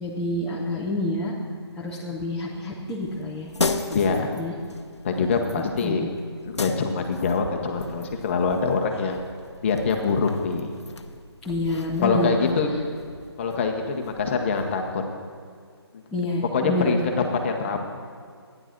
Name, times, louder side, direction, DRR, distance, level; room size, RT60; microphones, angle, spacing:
voice 1, 0.0-1.3 1.8-3.5 3.9-4.0 4.4-4.5 5.6-6.1 11.5-12.6 16.1-17.1, left 1 dB, 5° left, -8 dB, 0.6 m, -28 dB
sound 1, 3.0-14.9, left 3 dB, 90° left, 0.8 m, -36 dB
voice 2, 3.9-4.4 5.0-6.1 6.4-9.2 9.6-10.7 12.0-12.7 13.4-15.0 15.9-16.0 16.5-17.9, left 4 dB, 25° left, 3 dB, 1.0 m, -24 dB
12.0 x 9.9 x 4.5 m, 2.1 s
figure-of-eight pair, 160°, 14 cm